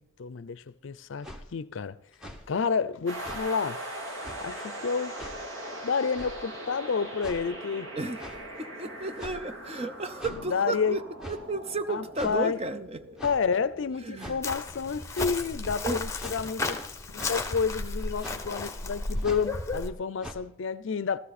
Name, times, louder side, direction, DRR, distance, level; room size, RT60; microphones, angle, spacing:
voice 1, 0.0-2.0 2.5-3.8 4.4-5.2 5.8-7.9 10.5-11.0 11.9-12.6 13.2-16.8 17.1-21.2, left 5 dB, 65° left, 0.5 m, -30 dB
sound 1, 1.2-1.4 2.1-2.4 3.2-3.4 4.2-4.4 5.2-5.4 6.1-6.4 7.2-7.4 8.2-8.4 9.2-9.5 10.2-10.4 11.2-11.4 12.2-12.4 13.2-13.4 14.2-14.4 15.1-15.4 16.2-16.4 17.2-17.4 18.2-18.4 19.2-19.5 20.2-20.3, equal, 5° right, 1.2 m, -41 dB
sound 2, 3.1-14.7, right 1 dB, 70° right, 2.7 m, -41 dB
voice 2, 8.6-11.0 11.3-13.0 14.0-14.4 15.8-16.0, right 3 dB, 30° right, 0.6 m, -33 dB
Chirp tweet, 14.4-19.9, left 3 dB, 15° left, 1.0 m, -34 dB
15.5 x 13.5 x 4.1 m
head